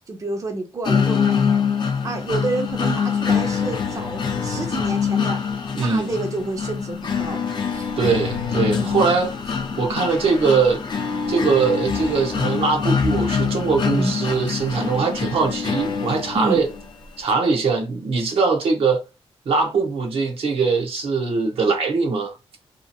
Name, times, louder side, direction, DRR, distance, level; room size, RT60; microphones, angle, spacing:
voice 1, 0.1-1.6 2.0-5.4 5.8-7.4 7.7-7.9 8.8-9.0 13.9-14.1 16.3-16.6, right 2 dB, 35° right, 0.5 m, -29 dB
sound 1, 0.8-16.8, left 6 dB, 45° left, 0.5 m, -24 dB
voice 2, 5.7-6.1 8.0-9.3 9.8-10.8 11.2-16.7 17.2-19.0 19.5-22.3, right 4 dB, 70° right, 0.7 m, -21 dB
2.7 x 2.4 x 2.6 m
wide cardioid pair, 115°, 10 cm